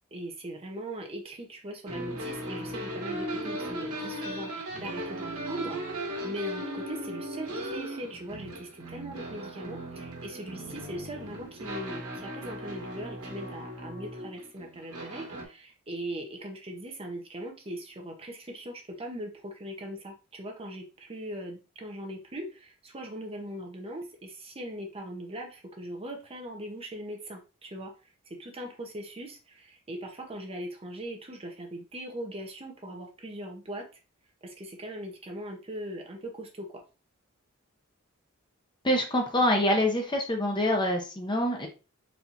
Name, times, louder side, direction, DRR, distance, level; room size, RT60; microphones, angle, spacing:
voice 1, 0.1-27.9 28.3-33.9 34.4-36.7, right 1 dB, 25° right, 1 dB, 0.9 m, -40 dB
sound 1, 1.9-15.4, right 1 dB, 80° right, 1.3 m, -37 dB
voice 2, 38.8-41.7, left 1 dB, 20° left, 3 dB, 0.8 m, -25 dB
4.2 x 3.4 x 2.8 m, 0.32 s
head